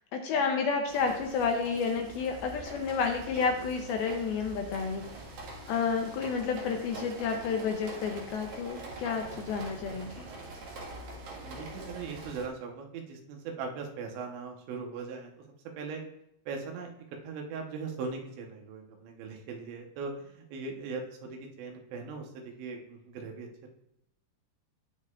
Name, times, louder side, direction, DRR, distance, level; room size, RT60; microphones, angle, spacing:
voice 1, 0.1-5.0 5.7-10.3, left 5 dB, 75° left, 4 dB, 2.4 m, -30 dB
sound 1, 0.9-12.5, right 2 dB, 55° right, 2.7 m, -44 dB
voice 2, 11.4-15.4 15.8-16.0 16.5-23.7, right 4 dB, 85° right, 2 dB, 3.4 m, -40 dB
18.0 x 6.5 x 2.5 m, 0.79 s
omnidirectional pair, 5.0 m